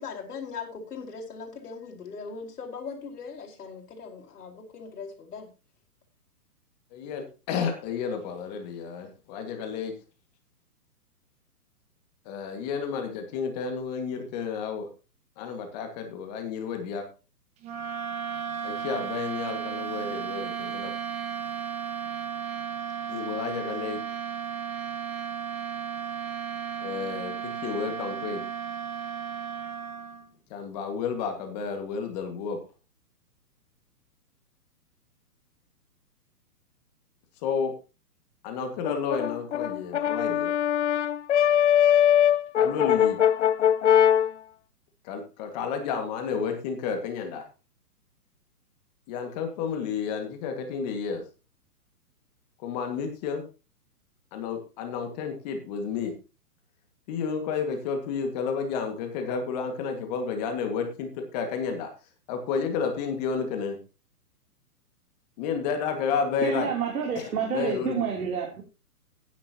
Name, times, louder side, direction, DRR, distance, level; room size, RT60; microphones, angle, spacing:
voice 1, 0.0-5.5, left 5 dB, 70° left, 0 dB, 5.0 m, -39 dB
voice 2, 6.9-9.9 12.3-14.9 15.4-17.1 18.6-20.9 23.1-24.0 26.8-28.4 30.5-32.6 37.4-37.7 38.4-40.5 42.6-43.2 45.0-47.4 49.1-51.2 52.6-53.5 54.3-56.1 57.1-61.9 62.3-63.8 65.4-66.7 67.5-68.0, left 6 dB, 25° left, 5 dB, 2.0 m, -31 dB
sound 1, 17.6-30.3, right 8 dB, 15° right, 1.3 m, -34 dB
Brass instrument, 38.9-44.3, left 10 dB, 50° left, 0.8 m, -21 dB
voice 3, 66.4-68.6, right 6 dB, 65° right, 0 dB, 3.3 m, -29 dB
15.5 x 10.0 x 3.0 m, 0.32 s
hypercardioid pair, 160°, 47 cm